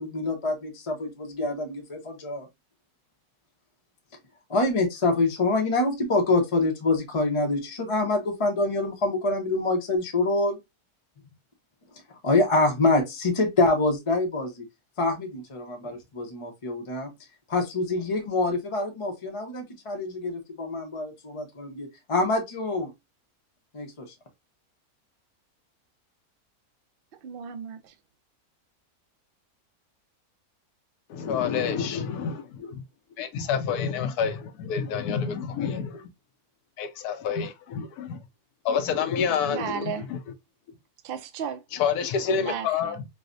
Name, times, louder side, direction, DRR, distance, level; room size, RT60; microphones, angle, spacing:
voice 1, 0.0-2.5 4.5-10.6 12.1-14.7 15.0-17.1 17.5-22.9 23.7-24.1, left 2 dB, 35° left, 0.5 m, -26 dB
voice 2, 27.2-27.9 39.5-40.1 41.0-41.6 42.3-43.0, right 7 dB, 75° right, 0.5 m, -34 dB
voice 3, 31.1-32.8 33.2-36.1 36.8-38.2 38.6-40.2 41.7-43.0, left 6 dB, 85° left, 1.2 m, -28 dB
4.7 x 2.1 x 2.4 m
omnidirectional pair, 1.6 m